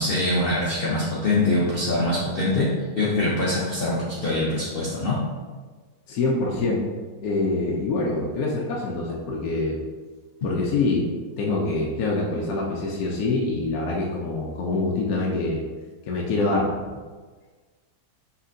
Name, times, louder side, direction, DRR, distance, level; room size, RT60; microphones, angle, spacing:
voice 1, 0.0-2.7 3.0-5.2, left 2 dB, 55° left, -6 dB, 0.7 m, -23 dB
voice 2, 6.1-6.8 7.2-9.8 10.4-11.1 11.4-15.6 16.0-16.7, left 3 dB, 70° left, -3 dB, 1.0 m, -25 dB
5.5 x 3.2 x 2.6 m, 1.4 s
omnidirectional pair, 1.8 m